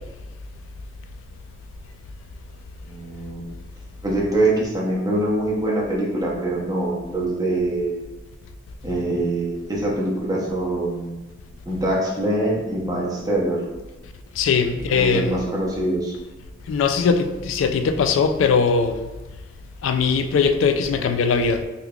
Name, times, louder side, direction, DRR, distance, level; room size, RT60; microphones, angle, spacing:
voice 1, 2.8-3.4 4.0-8.0 8.8-11.2 11.7-13.6 14.9-16.1, right 1 dB, 20° right, -4 dB, 0.7 m, -24 dB
voice 2, 14.4-15.4 16.7-19.1 19.8-21.6, left 5 dB, 80° left, 7 dB, 0.3 m, -20 dB
3.6 x 3.1 x 2.3 m, 1.1 s
head